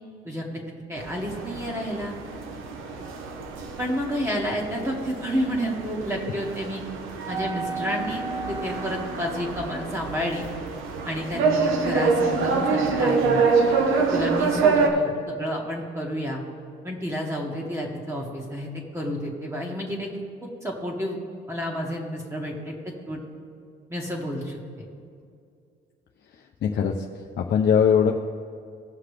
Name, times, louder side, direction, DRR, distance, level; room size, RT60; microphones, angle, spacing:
voice 1, 0.3-0.6 0.9-2.1 3.8-6.8 7.3-8.2 8.5-10.4 11.1-13.5 14.1-16.4 16.8-21.2 21.5-22.7 23.1-23.2 23.9-24.6, equal, 15° right, -2 dB, 1.8 m, -30 dB
sound 1, 1.0-14.9, right 4 dB, 90° right, 1.0 m, -26 dB
voice 2, 26.6-26.9 27.4-28.1, left 7 dB, 60° left, 1 dB, 0.6 m, -20 dB
16.5 x 5.7 x 3.3 m, 2.4 s
cardioid pair, 90°, 20 cm